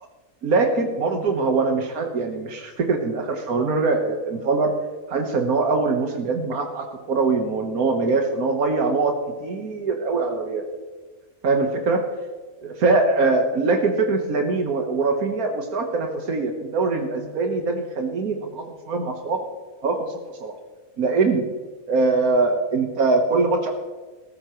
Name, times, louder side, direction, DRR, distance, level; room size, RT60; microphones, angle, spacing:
voice 1, 0.4-4.7 5.1-10.7 11.4-12.0 12.6-19.4 19.8-20.1 20.4-20.6 21.0-21.5 21.9-23.7, right 3 dB, 90° right, 4 dB, 1.8 m, -22 dB
20.0 x 13.5 x 3.1 m, 1.3 s
omnidirectional pair, 1.5 m